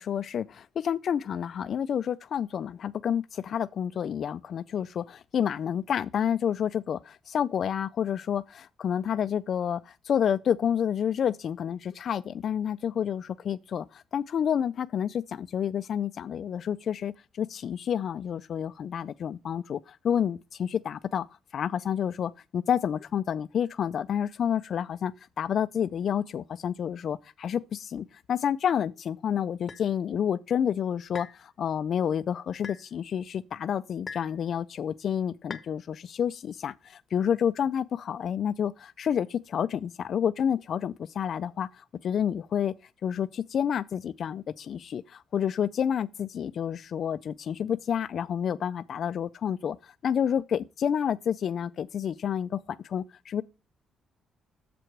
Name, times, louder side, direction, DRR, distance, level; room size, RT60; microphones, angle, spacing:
voice 1, 0.0-21.3 21.5-42.7 43.0-53.4, left 8 dB, 60° left, 0.3 m, -29 dB
sound 1, 29.7-29.9 31.1-31.4 32.6-32.8 34.1-34.4 35.5-35.7, left 6 dB, 45° left, 0.8 m, -40 dB
6.8 x 4.6 x 6.4 m
cardioid pair, 90°, 0 cm